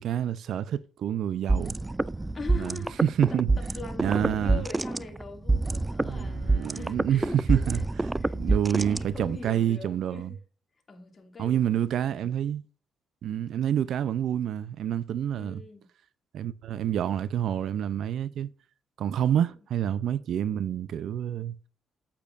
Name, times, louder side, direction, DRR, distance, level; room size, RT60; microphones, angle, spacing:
voice 1, 0.0-1.7 2.5-3.5 4.0-4.6 6.0-7.8 8.3-10.3 11.4-12.6 13.2-15.6 16.3-18.5 19.0-21.6, right 10 dB, 70° right, 0.5 m, -28 dB
sound 1, 1.5-9.5, right 3 dB, 15° right, 0.3 m, -27 dB
voice 2, 2.3-3.0 3.3-7.8 8.2-10.4 10.9-12.3 15.3-15.9, left 3 dB, 35° left, 2.4 m, -42 dB
8.6 x 8.5 x 2.5 m
cardioid pair, 90°, 0 cm